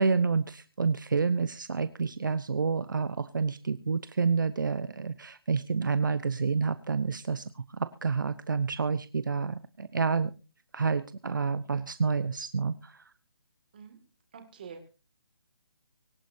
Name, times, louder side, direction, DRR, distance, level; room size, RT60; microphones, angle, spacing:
voice 1, 0.0-10.3 10.7-13.0, right 5 dB, 55° right, 13 dB, 0.9 m, -29 dB
voice 2, 14.3-14.9, right 6 dB, 25° right, 6 dB, 2.1 m, -46 dB
24.5 x 9.8 x 2.7 m, 0.33 s
hypercardioid pair, 180°, 12 cm